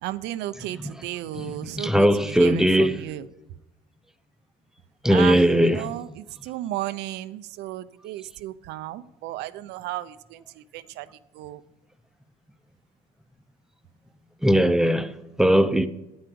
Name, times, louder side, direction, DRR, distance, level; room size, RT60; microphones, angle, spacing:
voice 1, 0.0-3.2 5.1-11.1 11.3-11.6, right 14 dB, 90° right, 0.6 m, -34 dB
voice 2, 1.3-3.0 5.0-5.9 14.4-15.9, equal, 5° right, 0.6 m, -20 dB
9.5 x 8.9 x 6.9 m
cardioid pair, 110°, 17 cm